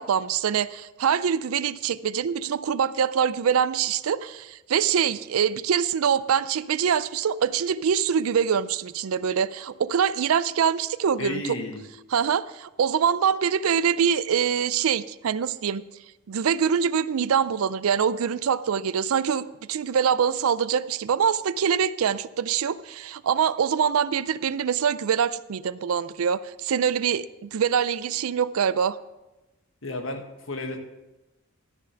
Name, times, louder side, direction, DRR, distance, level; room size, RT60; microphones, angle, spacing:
voice 1, 0.0-11.4 12.1-15.8 16.3-29.0, right 7 dB, 80° right, 17 dB, 0.4 m, -24 dB
voice 2, 11.2-11.8 29.8-30.8, left 2 dB, 65° left, 5 dB, 1.4 m, -33 dB
13.0 x 6.7 x 5.8 m, 1.0 s
head